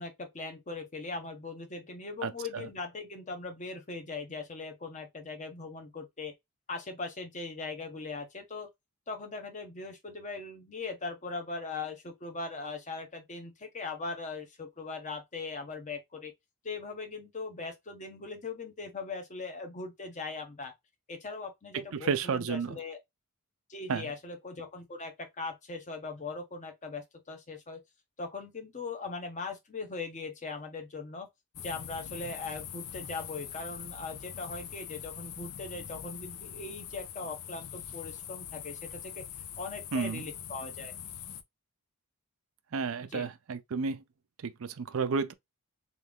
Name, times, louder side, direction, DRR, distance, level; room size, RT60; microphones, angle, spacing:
voice 1, 0.0-6.3 6.7-8.7 9.1-16.3 16.6-20.7 21.1-23.0 23.7-27.8 28.2-31.3 31.6-39.2 39.6-40.9 43.0-43.3, left 3 dB, 35° left, 0.9 m, -40 dB
voice 2, 21.9-22.8 23.9-24.0 39.9-40.2 42.7-44.0 44.4-45.3, right 5 dB, 65° right, 0.5 m, -31 dB
sound 1, 31.5-41.4, left 9 dB, 90° left, 0.5 m, -43 dB
3.3 x 2.5 x 3.5 m
head